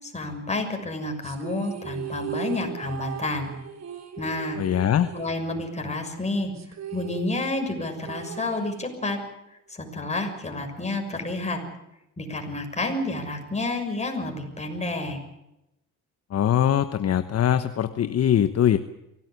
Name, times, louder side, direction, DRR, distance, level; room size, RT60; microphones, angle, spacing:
voice 1, 0.0-3.5 4.2-6.5 6.9-9.2 9.7-11.6 12.2-15.2, left 2 dB, 20° left, 4 dB, 6.5 m, -30 dB
sound 1, 1.2-5.9 6.1-6.2 6.5-9.2, right 8 dB, 60° right, 3.3 m, -38 dB
voice 2, 4.6-5.1 16.3-18.8, left 10 dB, 55° left, 10 dB, 1.1 m, -22 dB
24.5 x 17.0 x 8.4 m, 0.89 s
cardioid pair, 90°, 30 cm